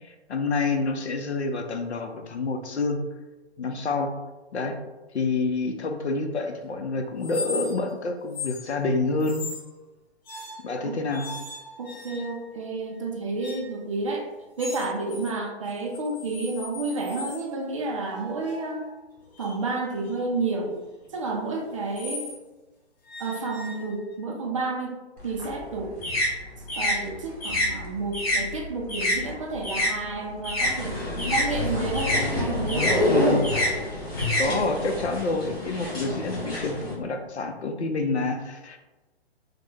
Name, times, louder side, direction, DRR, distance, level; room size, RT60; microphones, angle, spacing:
voice 1, 0.0-3.0 3.6-4.1 4.5-4.8 5.1-9.5 10.6-11.3 33.1-33.4 34.4-38.8, left 3 dB, 85° left, 5 dB, 0.6 m, -28 dB
sound 1, 7.2-7.9 8.3-8.7 9.2-9.7 10.3-10.8 11.1-12.5 13.4-13.8 14.6-15.3 15.7-17.4 18.1-22.4 23.1-24.2, left 3 dB, 40° left, 0.8 m, -39 dB
voice 2, 11.8-14.3 14.6-18.9 19.4-20.8 21.1-22.3 23.2-25.0 25.2-25.9 26.8-31.0 31.3-32.9 33.3-33.5 34.5-34.7, right 3 dB, 30° right, 0 dB, 0.4 m, -30 dB
sound 2, 25.2-29.9 30.2-35.1, left 1 dB, 60° left, 1.2 m, -28 dB
sound 3, 30.6-36.9, left 2 dB, 15° left, 0.9 m, -28 dB
3.2 x 2.1 x 3.1 m, 1.1 s
figure-of-eight pair, 135°, 33 cm